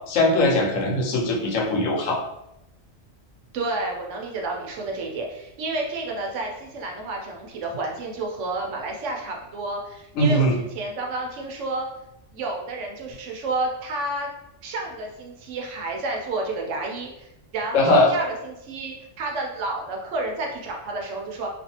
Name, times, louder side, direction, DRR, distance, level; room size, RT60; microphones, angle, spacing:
voice 1, 0.1-2.2 10.1-10.6 17.7-18.1, left 1 dB, 85° left, 0 dB, 1.0 m, -20 dB
voice 2, 3.5-11.9 12.3-14.3 14.6-17.3 17.5-21.5, right 2 dB, 75° right, 0 dB, 0.9 m, -30 dB
2.5 x 2.3 x 2.8 m, 0.85 s
omnidirectional pair, 1.3 m